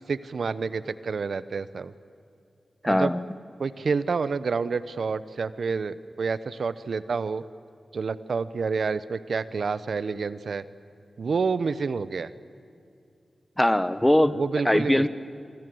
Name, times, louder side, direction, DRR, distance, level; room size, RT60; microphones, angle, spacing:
voice 1, 0.1-1.9 2.8-3.1 3.6-7.4 7.9-10.6 11.2-12.3 14.3-15.1, right 5 dB, 75° right, 15 dB, 0.9 m, -28 dB
voice 2, 2.8-3.3 13.6-14.4 14.6-15.1, left 1 dB, 10° left, 14 dB, 1.2 m, -21 dB
29.0 x 24.5 x 7.9 m, 2.5 s
cardioid pair, 60°, 0 cm